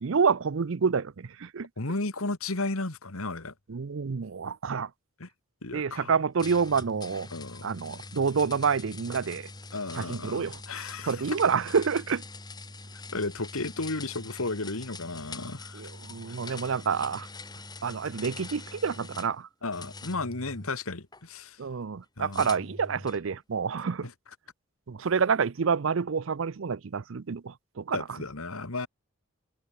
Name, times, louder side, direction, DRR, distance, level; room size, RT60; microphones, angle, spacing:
voice 1, 0.0-1.7 3.7-4.9 5.7-7.3 7.6-9.5 10.0-10.6 11.0-12.2 15.7-17.3 17.8-19.5 21.6-24.1 24.9-28.2, right 5 dB, 70° right, 0.5 m, -28 dB
voice 2, 1.8-3.5 5.2-5.3 5.6-6.1 7.3-7.7 9.7-11.2 13.1-15.8 19.6-21.6 22.2-22.5 24.0-24.1 27.9-28.9, left 3 dB, 85° left, 2.1 m, -34 dB
sound 1, 6.4-19.3 19.7-21.2 22.3-23.3, left 3 dB, 20° left, 2.8 m, -44 dB
head